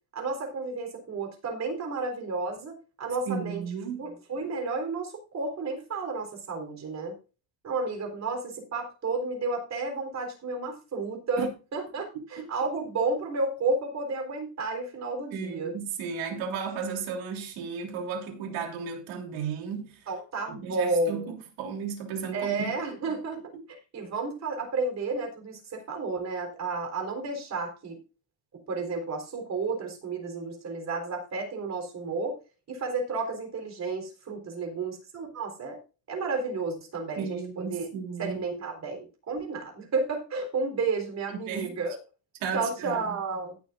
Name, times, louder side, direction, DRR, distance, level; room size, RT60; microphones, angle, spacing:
voice 1, 0.1-3.6 4.0-7.2 7.6-15.7 20.1-21.3 22.3-23.5 23.9-28.0 28.7-32.4 32.7-35.8 36.1-37.9 38.2-42.0 42.5-43.6, right 3 dB, 35° right, 3.8 m, -32 dB
voice 2, 3.3-4.0 11.4-11.5 12.4-12.5 15.3-20.0 20.5-22.7 23.5-23.6 37.1-38.4 41.3-41.8 42.4-43.0, right 6 dB, 85° right, 3.2 m, -34 dB
18.0 x 7.0 x 2.5 m
cardioid pair, 155°, 46 cm